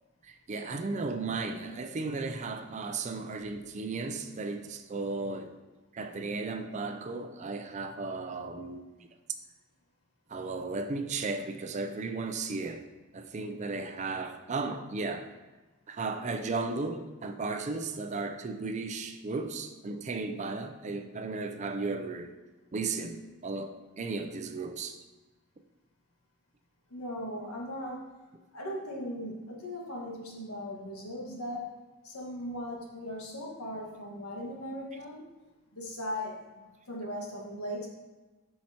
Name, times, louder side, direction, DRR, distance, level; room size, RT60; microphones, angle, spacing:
voice 1, 0.2-5.5 5.9-8.9 10.3-12.8 13.1-15.3 15.9-22.3 22.7-25.0, right 3 dB, 30° right, 6 dB, 0.4 m, -35 dB
voice 2, 26.9-28.0 28.5-31.7 32.0-35.2 35.7-37.9, equal, 80° left, -2 dB, 1.5 m, -38 dB
7.4 x 5.7 x 2.8 m, 1.2 s
head